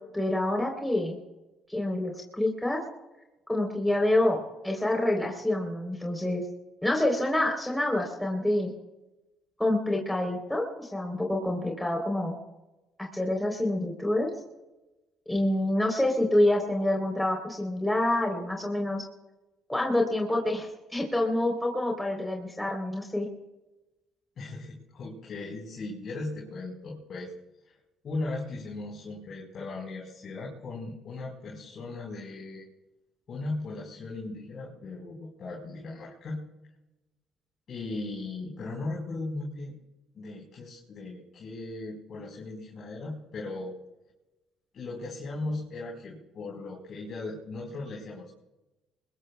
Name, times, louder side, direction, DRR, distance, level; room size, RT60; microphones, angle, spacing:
voice 1, 0.1-1.2 1.7-2.8 3.5-6.4 6.8-8.7 9.6-12.3 13.0-14.3 15.3-19.0 19.7-23.3, left 1 dB, 5° left, 0 dB, 3.8 m, -27 dB
voice 2, 24.4-27.3 27.7-27.8 28.0-32.6 33.3-36.4 37.7-39.7 40.1-43.7 44.7-48.3, left 2 dB, 55° left, -3 dB, 4.6 m, -37 dB
22.5 x 21.5 x 2.4 m, 1.0 s
supercardioid pair, 65°, 0 cm